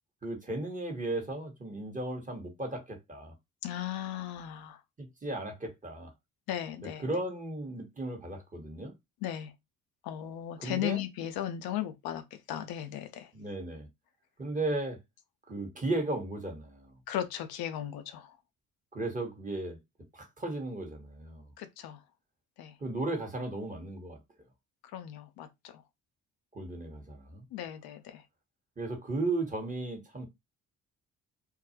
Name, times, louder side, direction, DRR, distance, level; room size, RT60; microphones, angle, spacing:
voice 1, 0.2-3.3 5.0-6.1 7.0-8.9 10.6-11.0 13.3-13.9 14.4-15.0 15.5-16.9 18.9-19.8 20.1-21.4 22.8-24.2 26.5-27.4 28.8-30.3, right 2 dB, 20° right, 1.0 m, -35 dB
voice 2, 3.6-4.8 6.5-7.0 9.2-9.5 10.0-12.2 12.5-13.3 17.1-18.3 21.6-22.0 22.6-22.7 24.9-25.5 27.5-28.2, left 11 dB, 65° left, 0.5 m, -36 dB
2.3 x 2.0 x 2.7 m
hypercardioid pair, 55°, 39 cm